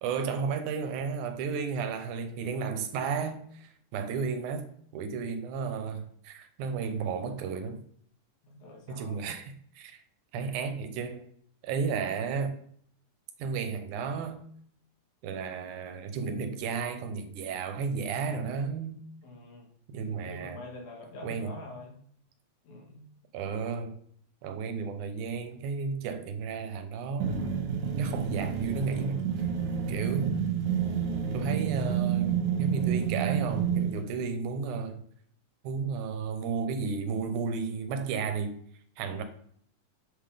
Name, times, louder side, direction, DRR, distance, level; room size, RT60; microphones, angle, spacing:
voice 1, 0.0-7.8 8.9-10.0 10.3-11.3 11.6-12.6 13.4-14.5 15.2-19.0 19.9-20.6 21.2-21.6 23.3-24.0 24.4-27.4 28.0-29.2 29.9-30.4 31.3-35.0 35.6-38.6 39.0-39.2, right 5 dB, 85° right, 2.3 m, -33 dB
voice 2, 8.4-9.2 19.2-19.7 20.2-22.0 22.6-23.0 39.0-39.2, left 1 dB, 75° left, 3.1 m, -45 dB
sound 1, 27.2-34.0, right 7 dB, 70° right, 2.4 m, -29 dB
7.9 x 3.7 x 5.0 m
omnidirectional pair, 3.5 m